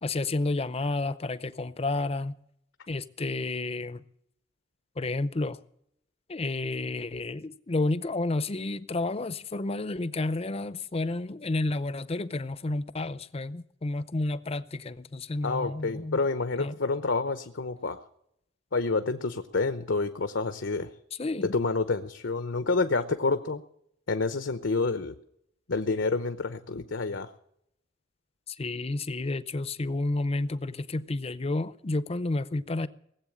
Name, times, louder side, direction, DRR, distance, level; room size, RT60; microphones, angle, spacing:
voice 1, 0.0-2.3 2.9-4.0 5.0-5.6 6.3-16.2 16.6-16.7 21.2-21.5 28.5-32.9, left 2 dB, 30° left, 0.6 m, -31 dB
voice 2, 15.4-18.0 18.7-20.9 21.4-23.6 24.1-25.2 25.7-27.3, left 3 dB, 75° left, 0.8 m, -28 dB
19.0 x 8.0 x 8.7 m
head